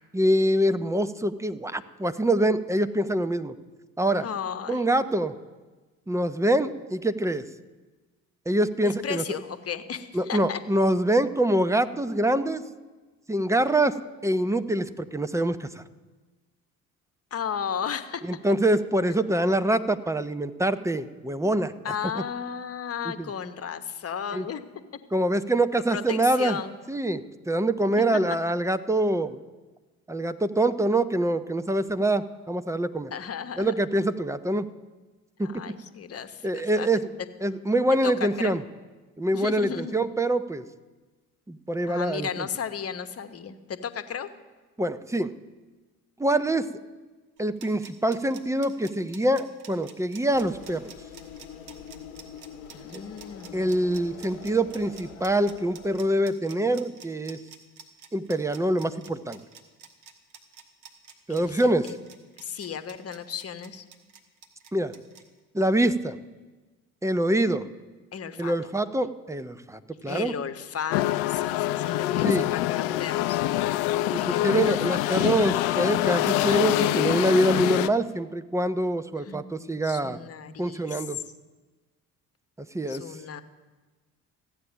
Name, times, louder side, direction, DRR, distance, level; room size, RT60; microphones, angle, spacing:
voice 1, 0.1-3.5 4.0-4.3 4.7-5.3 6.1-7.4 8.5-9.2 10.1-12.6 13.3-14.0 14.2-15.8 18.2-21.7 23.0-23.3 24.3-24.5 25.1-26.6 26.9-29.4 30.1-33.1 33.6-34.7 35.4-35.7 36.4-37.0 37.4-38.6 39.2-40.6 41.5-42.5 44.8-45.3 46.2-46.7 47.4-50.9 52.9-53.0 53.5-57.4 58.1-59.4 61.3-61.9 64.7-64.9 65.5-66.2 67.0-67.7 68.4-70.3 72.2-72.5 74.1-80.2 80.6-81.2 82.7-83.0, right 1 dB, 5° right, 11 dB, 0.6 m, -25 dB
voice 2, 4.2-4.8 8.8-10.6 17.3-18.2 21.8-24.6 25.9-26.8 28.0-28.1 33.1-33.8 35.4-36.9 38.0-38.6 39.3-40.0 41.9-44.3 52.7-53.7 54.0-54.1 61.3-62.0 62.4-63.8 68.1-68.5 70.1-73.4 74.2-75.0 79.2-81.0 82.9-83.4, left 7 dB, 35° left, 10 dB, 1.1 m, -34 dB
sound 1, 47.4-65.2, right 7 dB, 70° right, 1.3 m, -48 dB
sound 2, 50.3-56.1, left 8 dB, 75° left, 1.0 m, -45 dB
sound 3, 70.9-77.9, left 15 dB, 60° left, 0.6 m, -25 dB
14.5 x 8.7 x 6.3 m, 1.3 s
figure-of-eight pair, 50°, 43 cm